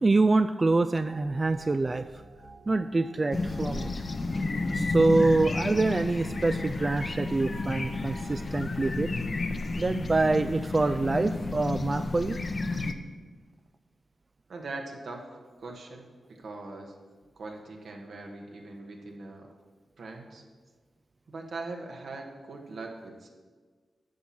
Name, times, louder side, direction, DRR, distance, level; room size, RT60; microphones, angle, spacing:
voice 1, 0.0-2.2 2.7-3.9 4.7-9.1 9.8-12.4, right 3 dB, 35° right, 10 dB, 0.3 m, -25 dB
sound 1, 1.0-9.0, right 2 dB, 55° right, 1.1 m, -50 dB
sound 2, 3.3-12.9, left 3 dB, 45° left, 0.8 m, -31 dB
voice 2, 14.5-16.9 17.4-19.5 20.0-20.4 21.3-23.3, right 3 dB, 75° right, 2 dB, 1.7 m, -41 dB
9.5 x 6.0 x 7.2 m, 1.5 s
cardioid pair, 60°, 0 cm